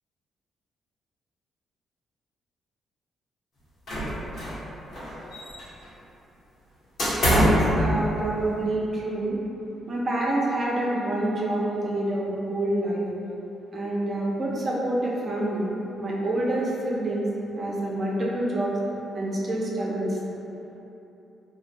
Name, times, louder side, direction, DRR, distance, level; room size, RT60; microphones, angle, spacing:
sound 1, 3.9-4.6 4.9-5.8 7.0-7.7, equal, 65° left, 1.2 m, -23 dB
voice 1, 7.2-9.4 9.9-13.1 13.7-15.7 16.0-17.3 17.6-18.7 19.1-20.2, right 1 dB, 45° right, -4 dB, 0.6 m, -27 dB
2.5 x 2.0 x 3.3 m, 3.0 s
hypercardioid pair, 45°, 0 cm